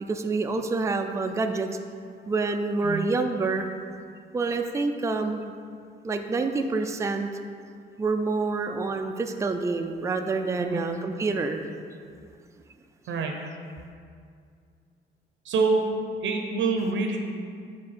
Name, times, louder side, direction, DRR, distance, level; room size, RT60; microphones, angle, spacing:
voice 1, 0.1-1.7 2.3-3.7 4.3-5.5 6.0-7.3 8.0-11.6 16.8-16.9, right 3 dB, 15° right, 5 dB, 0.3 m, -27 dB
voice 2, 13.1-13.4 15.4-15.8 16.2-17.2, right 4 dB, 70° right, 3 dB, 0.6 m, -26 dB
6.6 x 3.4 x 4.2 m, 2.3 s
cardioid pair, 90°, 20 cm